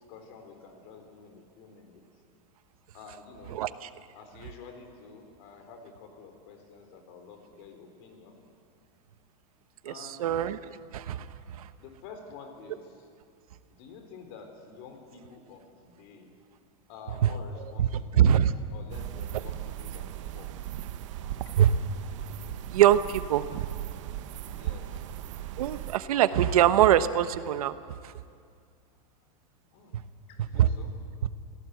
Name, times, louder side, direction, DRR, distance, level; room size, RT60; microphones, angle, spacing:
voice 1, 0.0-2.0 2.9-3.6 4.1-8.4 9.9-10.4 11.8-13.1 13.8-16.3 16.9-18.3 18.7-20.5 21.4-21.5 24.6-25.1 29.7-30.0 30.3-30.9, left 5 dB, 45° left, 5 dB, 3.8 m, -49 dB
voice 2, 3.5-3.9 9.8-10.6 10.9-11.3 11.6-11.7 17.2-17.3 17.8-17.9 18.1-18.5 21.6-21.7 22.7-23.6 25.6-27.8 28.0-28.1 30.6-30.7, right 11 dB, 80° right, 12 dB, 1.1 m, -23 dB
sound 1, 18.9-26.0, right 12 dB, 60° right, 1.1 m, -38 dB
25.0 x 17.5 x 8.1 m, 2.3 s
supercardioid pair, 170°, 18 cm